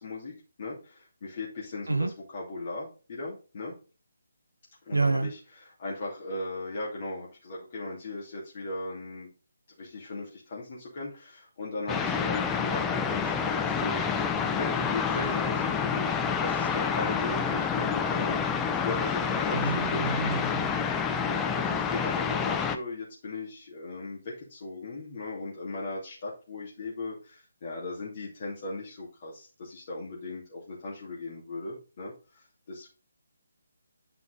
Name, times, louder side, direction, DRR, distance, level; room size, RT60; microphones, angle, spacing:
voice 1, 0.0-3.7 4.9-9.3 9.8-20.5 21.3-32.9, left 2 dB, 40° left, 2.9 m, -38 dB
voice 2, 4.9-5.3 19.5-20.8, right 3 dB, 75° right, 1.0 m, -28 dB
sound 1, 11.9-22.8, left 6 dB, 10° left, 0.6 m, -28 dB
9.7 x 5.8 x 3.9 m
figure-of-eight pair, 145°, 0 cm